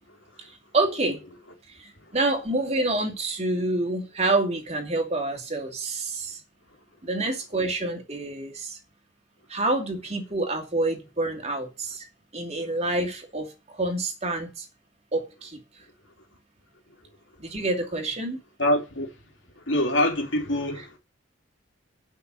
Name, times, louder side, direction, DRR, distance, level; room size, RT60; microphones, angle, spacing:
voice 1, 0.4-1.2 1.7-6.4 7.0-8.8 9.5-12.0 12.3-14.7 15.1-15.6 17.4-18.4, right 2 dB, 35° right, 2.5 m, -27 dB
voice 2, 18.6-19.1 19.6-21.0, left 1 dB, 75° left, 3.2 m, -25 dB
9.6 x 6.0 x 8.3 m
head